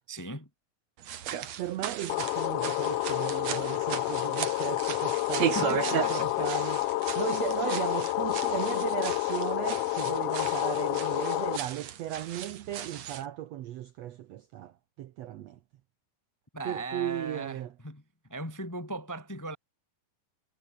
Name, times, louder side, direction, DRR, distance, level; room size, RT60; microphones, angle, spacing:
voice 1, 0.1-0.5 1.4-1.5 5.5-6.5 16.5-18.0 18.3-19.6, right 2 dB, 10° left, 1.0 m, -38 dB
sound 1, 1.0-13.3, right 10 dB, 55° right, 2.6 m, -36 dB
voice 2, 1.6-15.6 16.7-17.7, right 12 dB, 75° right, 1.6 m, -36 dB
sound 2, 2.1-11.6, left 20 dB, 80° left, 1.9 m, -29 dB
omnidirectional pair, 3.9 m